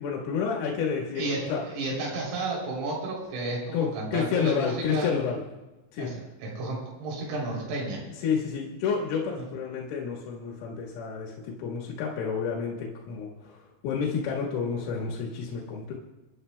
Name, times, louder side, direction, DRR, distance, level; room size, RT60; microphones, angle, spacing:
voice 1, 0.0-1.6 3.7-5.4 5.9-6.1 8.2-13.6 13.8-15.9, left 6 dB, 85° left, -2 dB, 4.1 m, -30 dB
voice 2, 1.2-5.1 6.0-8.0 9.4-9.5, right 2 dB, 90° right, -3 dB, 6.0 m, -32 dB
29.5 x 11.0 x 2.2 m, 1.1 s
omnidirectional pair, 5.8 m